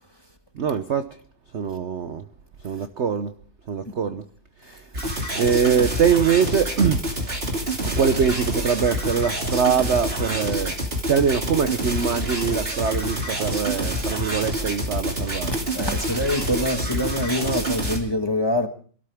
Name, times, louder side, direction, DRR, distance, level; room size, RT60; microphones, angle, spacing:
voice 1, 0.5-1.2 1.5-2.2 2.6-3.3 3.7-4.2 4.6-4.8 5.3-7.1 7.8-10.7 11.1-15.6, right 6 dB, 55° right, 0.8 m, -23 dB
sound 1, 4.9-18.0, right 1 dB, 30° right, 3.0 m, -27 dB
voice 2, 15.5-18.7, left 1 dB, 15° left, 1.4 m, -25 dB
27.0 x 13.0 x 3.5 m
omnidirectional pair, 2.1 m